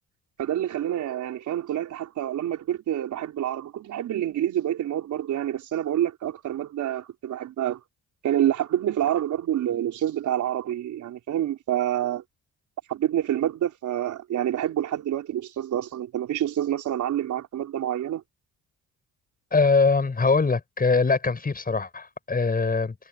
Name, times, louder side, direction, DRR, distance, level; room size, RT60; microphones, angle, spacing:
voice 1, 0.4-7.8 8.2-12.2 12.9-18.2, right 11 dB, 75° right, 4.3 m, -27 dB
voice 2, 19.5-23.0, left 4 dB, 30° left, 7.0 m, -22 dB
cardioid pair, 90°, 30 cm